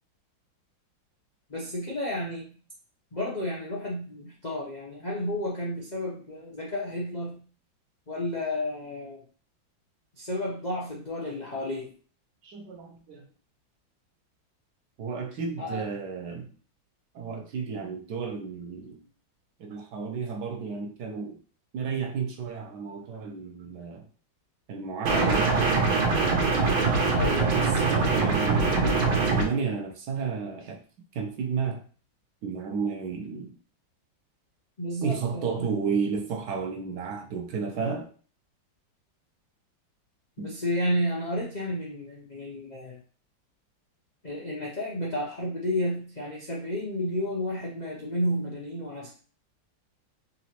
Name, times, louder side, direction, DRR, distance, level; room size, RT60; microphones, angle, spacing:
voice 1, 1.5-2.5 3.1-7.4 8.1-9.2 10.2-11.9 15.6-15.9 25.1-25.5 27.1-27.6 34.8-35.7 40.4-42.9 44.2-49.1, left 1 dB, 75° left, -5 dB, 0.4 m, -31 dB
voice 2, 12.4-13.3 15.0-16.5 17.1-19.0 19.6-21.4 21.7-24.0 24.7-25.5 27.5-30.8 31.1-31.9 32.4-33.5 35.0-38.1 40.4-40.5, right 5 dB, 70° right, 2 dB, 1.1 m, -32 dB
sound 1, 25.1-29.4, right 4 dB, 85° right, 1.6 m, -23 dB
4.0 x 2.9 x 2.9 m, 0.41 s
omnidirectional pair, 2.1 m